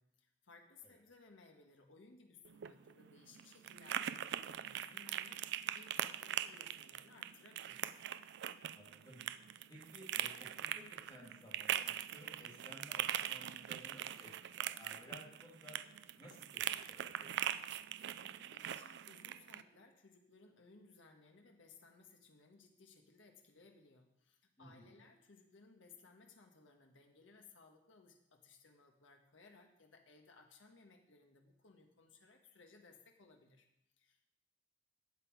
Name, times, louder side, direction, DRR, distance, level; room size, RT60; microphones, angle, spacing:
voice 1, 0.0-7.9 18.2-33.6 34.0-34.3, left 3 dB, 85° left, 2 dB, 1.5 m, -62 dB
sound 1, 2.4-19.6, right 11 dB, 65° right, 0.4 m, -42 dB
voice 2, 8.7-9.2 9.7-15.8 16.2-17.3 24.6-25.0, equal, 20° left, -4 dB, 3.1 m, -57 dB
12.0 x 8.3 x 4.8 m, 0.85 s
head